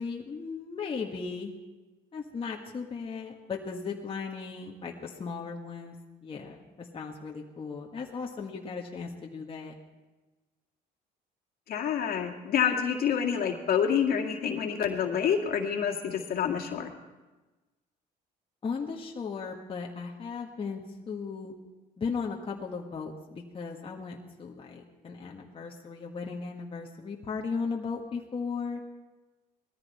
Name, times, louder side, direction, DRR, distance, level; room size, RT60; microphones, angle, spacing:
voice 1, 0.0-1.5 2.1-6.0 6.2-9.7 18.6-21.5 22.0-28.8, left 5 dB, 30° left, -1 dB, 1.5 m, -36 dB
voice 2, 11.7-16.9, left 8 dB, 65° left, 2 dB, 2.1 m, -27 dB
20.0 x 14.0 x 4.3 m, 1.2 s
cardioid pair, 110°, 17 cm